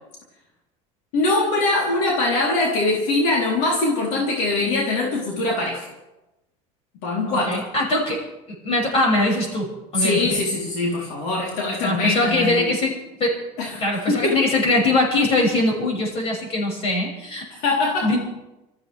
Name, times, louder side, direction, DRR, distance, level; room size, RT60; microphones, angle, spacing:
voice 1, 1.1-5.8 7.0-7.6 10.0-12.8 13.6-14.4 17.5-18.2, left 2 dB, 85° left, -2 dB, 3.7 m, -22 dB
voice 2, 7.3-8.2 8.6-9.7 9.9-10.4 11.8-12.9 13.2-13.4 13.8-17.4 18.0-18.2, left 2 dB, 40° left, -1 dB, 6.6 m, -21 dB
26.0 x 14.5 x 3.5 m, 0.98 s
cardioid pair, 145°, 16 cm